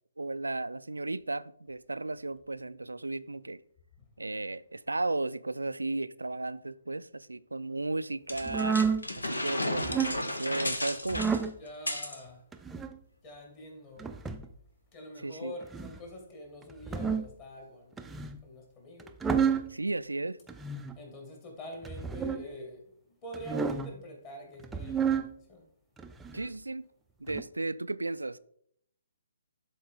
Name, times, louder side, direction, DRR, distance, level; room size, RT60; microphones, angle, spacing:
voice 1, 0.2-3.6 4.2-8.8 9.2-11.3 15.2-15.6 19.7-20.4 26.3-26.8 27.2-28.4, right 2 dB, 80° right, 0.3 m, -34 dB
sound 1, 8.3-12.2, left 1 dB, 80° left, 1.1 m, -33 dB
sound 2, 8.4-9.0 9.7-10.2 11.1-11.5 12.5-12.9 14.0-14.5 15.6-16.0 16.7-17.3 18.0-18.4 19.0-19.7 20.5-21.0 21.8-22.4 23.3-23.9 24.6-25.3 26.0-26.5 27.3-27.4, right 6 dB, 10° right, 0.5 m, -30 dB
voice 2, 11.6-12.4 13.2-14.1 14.9-17.9 18.4-19.1 21.0-22.8 23.2-25.2 25.5-25.7, left 1 dB, 30° left, 2.5 m, -45 dB
12.0 x 4.2 x 3.8 m
figure-of-eight pair, 135°, 0 cm